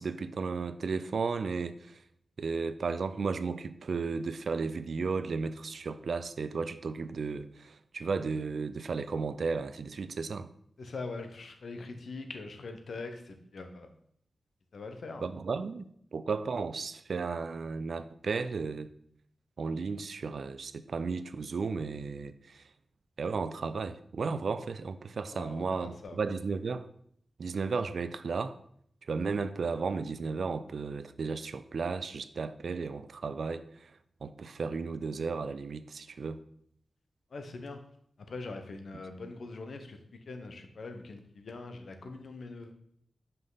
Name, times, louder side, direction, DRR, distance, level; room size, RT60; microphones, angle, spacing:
voice 1, 0.0-2.0 2.4-10.5 15.2-18.9 19.6-22.7 23.2-26.9 27.4-28.6 29.0-36.4, right 4 dB, 70° right, 13 dB, 0.4 m, -34 dB
voice 2, 10.8-13.9 14.7-15.3 25.3-26.2 37.3-37.8 38.3-40.0 40.3-42.7, left 3 dB, 70° left, 6 dB, 0.8 m, -42 dB
5.6 x 5.3 x 3.9 m, 0.67 s
cardioid pair, 70°, 0 cm